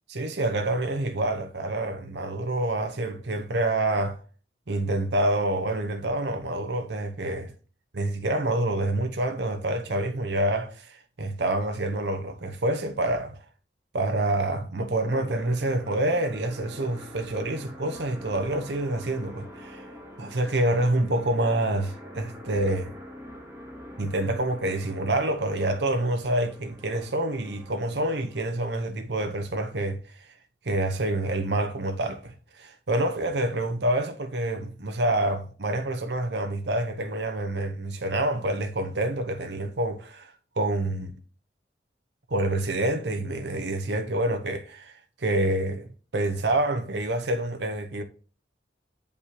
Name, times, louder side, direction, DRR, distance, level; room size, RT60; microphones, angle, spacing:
voice 1, 0.1-4.2 4.7-7.5 7.9-13.4 13.9-19.9 20.2-22.9 24.0-30.3 30.6-41.1 42.3-48.0, right 1 dB, 75° right, 0.9 m, -27 dB
sound 1, 15.1-28.4, equal, 15° right, 1.5 m, -45 dB
8.2 x 5.3 x 2.9 m
head